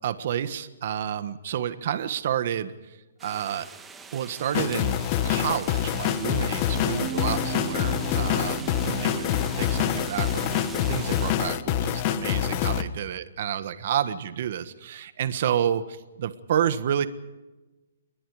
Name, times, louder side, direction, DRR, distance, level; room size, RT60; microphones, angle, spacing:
voice 1, 0.0-3.7 4.1-5.0 5.2-9.3 9.5-17.1, right 9 dB, 40° right, 13 dB, 1.5 m, -30 dB
sound 1, 3.2-11.3, right 5 dB, 10° right, 1.6 m, -43 dB
sound 2, 4.5-12.8, left 11 dB, 25° left, 1.1 m, -26 dB
sound 3, 6.7-12.2, right 7 dB, 25° right, 5.6 m, -38 dB
28.5 x 22.0 x 5.0 m, 1.1 s
hypercardioid pair, 170°, 0 cm